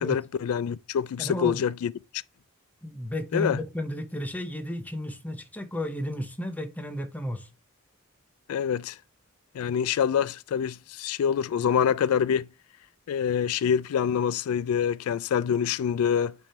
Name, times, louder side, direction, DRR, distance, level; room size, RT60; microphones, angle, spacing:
voice 1, 0.0-2.2 3.3-3.6 8.5-9.0 9.5-12.5 13.1-16.3, left 8 dB, 80° left, 0.3 m, -26 dB
voice 2, 1.2-1.6 2.8-7.5, left 1 dB, 5° left, 0.8 m, -33 dB
8.9 x 3.6 x 4.2 m
head